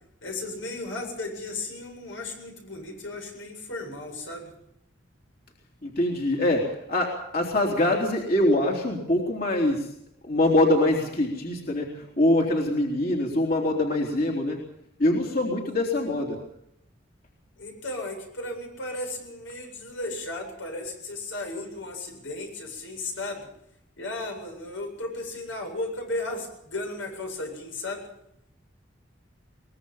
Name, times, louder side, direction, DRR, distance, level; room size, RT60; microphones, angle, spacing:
voice 1, 0.2-4.5 17.6-23.5 24.0-28.0, left 2 dB, 90° left, 2 dB, 7.9 m, -35 dB
voice 2, 5.8-9.9 10.2-14.6 15.0-16.4, left 1 dB, 50° left, -1 dB, 3.6 m, -24 dB
23.0 x 21.0 x 5.7 m, 0.78 s
head